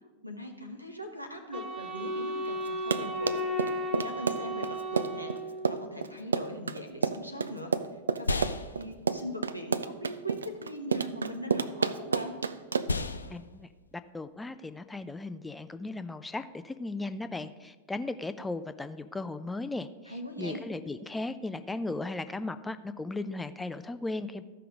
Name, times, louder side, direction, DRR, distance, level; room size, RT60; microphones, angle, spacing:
voice 1, 0.2-5.3 5.7-7.7 8.1-8.5 8.8-12.4 20.1-20.7, equal, 90° right, 5 dB, 1.0 m, -40 dB
Wind instrument woodwind instrument, 1.5-5.9, equal, 25° right, 1.3 m, -34 dB
Run, 2.7-13.1, right 5 dB, 75° right, 0.3 m, -30 dB
sound 1, 6.9-16.5, left 2 dB, 80° left, 0.4 m, -39 dB
voice 2, 13.3-13.7 14.1-24.4, left 2 dB, 10° left, 11 dB, 0.4 m, -36 dB
14.0 x 5.6 x 3.7 m, 1.3 s
figure-of-eight pair, 90°, 0 cm